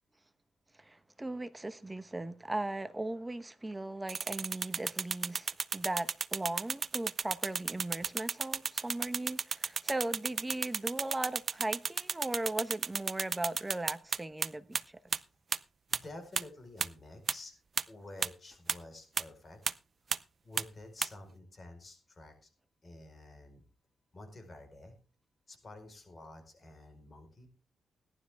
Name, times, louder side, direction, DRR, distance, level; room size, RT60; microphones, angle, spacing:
voice 1, 0.8-14.8, right 2 dB, 15° right, 1.1 m, -38 dB
sound 1, 4.1-14.5 14.7-14.8 15.1-15.2 15.5-15.6 15.9-16.0 16.4-16.5 16.8-16.9 17.3-17.4 17.8-17.9 18.2-18.3 18.7-18.8 19.2-19.3 19.7-19.8 20.1-20.2 20.6-20.7 21.0-21.1, right 5 dB, 45° right, 0.6 m, -32 dB
voice 2, 15.9-17.5 17.9-19.6 20.4-22.5 22.8-23.6 24.1-25.0 25.5-27.5, left 2 dB, 35° left, 4.6 m, -50 dB
17.5 x 12.0 x 3.5 m
cardioid pair, 85°, 0 cm